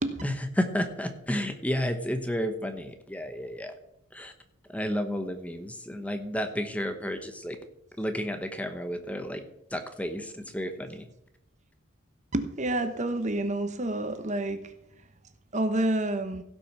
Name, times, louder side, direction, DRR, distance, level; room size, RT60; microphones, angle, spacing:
voice 1, 0.2-3.7 4.1-4.3 4.7-7.5 8.0-9.4 9.7-11.0, equal, 5° left, 8 dB, 0.9 m, -31 dB
voice 2, 12.3-14.7 15.5-16.4, right 1 dB, 35° right, 9 dB, 1.1 m, -28 dB
16.0 x 6.1 x 6.1 m, 0.79 s
head